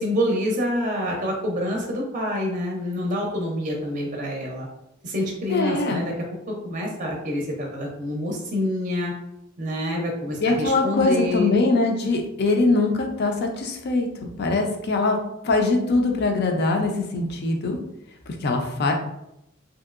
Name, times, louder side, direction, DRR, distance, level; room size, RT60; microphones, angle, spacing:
voice 1, 0.0-4.7 5.0-6.1 6.5-9.1 9.6-11.5, left 1 dB, 40° right, 0 dB, 0.6 m, -27 dB
voice 2, 5.5-6.0 10.4-15.2 15.4-17.8 18.4-18.9, left 3 dB, 50° left, 3 dB, 0.5 m, -22 dB
2.9 x 2.7 x 2.4 m, 0.83 s
head